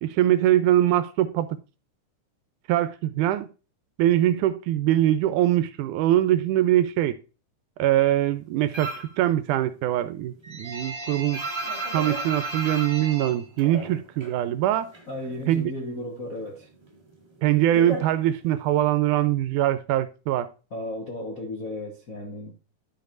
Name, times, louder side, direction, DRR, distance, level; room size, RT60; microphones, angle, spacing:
voice 1, 0.0-1.5 2.7-3.5 4.0-7.2 7.8-11.4 11.9-14.9 15.5-15.7 17.4-20.5, right 13 dB, 80° right, 2.0 m, -22 dB
sound 1, 8.7-9.2 9.5-14.4 14.7-15.7 16.0-18.8, right 2 dB, 20° right, 0.6 m, -34 dB
voice 2, 15.1-16.7 20.7-22.5, left 1 dB, 50° left, 1.0 m, -34 dB
12.5 x 5.3 x 2.5 m
omnidirectional pair, 3.7 m